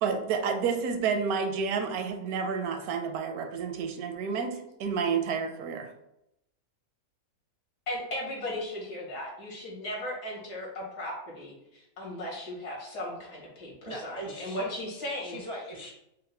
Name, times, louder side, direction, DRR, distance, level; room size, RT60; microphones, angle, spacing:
voice 1, 0.0-5.9, right 6 dB, 80° right, 6 dB, 1.0 m, -30 dB
voice 2, 7.9-15.4, left 1 dB, 70° left, -4 dB, 2.0 m, -36 dB
voice 3, 13.9-14.7 15.2-15.9, equal, 45° right, -3 dB, 0.3 m, -40 dB
5.5 x 2.1 x 3.3 m, 0.83 s
omnidirectional pair, 1.6 m